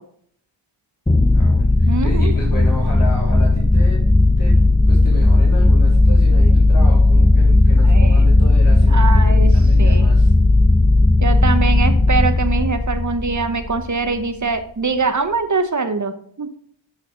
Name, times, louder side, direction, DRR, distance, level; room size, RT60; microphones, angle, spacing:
sound 1, 1.1-13.9, left 2 dB, 10° left, 0.6 m, -14 dB
voice 1, 1.3-4.0 4.4-4.6 4.9-10.3, equal, 45° left, -6 dB, 3.1 m, -33 dB
voice 2, 1.9-2.3 7.8-8.3 8.9-9.5 9.8-10.0 11.2-16.5, right 4 dB, 40° right, 10 dB, 0.9 m, -23 dB
9.1 x 5.2 x 3.8 m, 0.65 s
cardioid pair, 45°, 47 cm